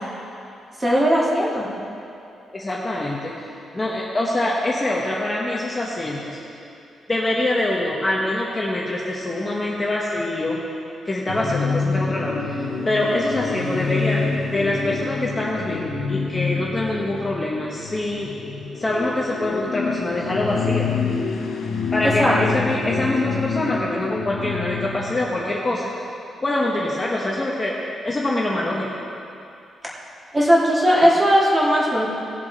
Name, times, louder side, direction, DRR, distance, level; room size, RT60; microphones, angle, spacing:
voice 1, 0.8-1.7 22.0-22.6 30.3-32.1, equal, 20° right, -5 dB, 2.1 m, -18 dB
voice 2, 2.5-3.3 3.7-6.4 7.1-10.6 11.0-18.3 18.8-20.9 21.9-25.8 26.4-27.8 28.0-28.9, left 1 dB, 15° left, -4 dB, 1.0 m, -24 dB
sound 1, 11.3-25.4, left 5 dB, 85° left, 1.2 m, -27 dB
18.0 x 7.0 x 4.0 m, 2.7 s
wide cardioid pair, 175°, 0 cm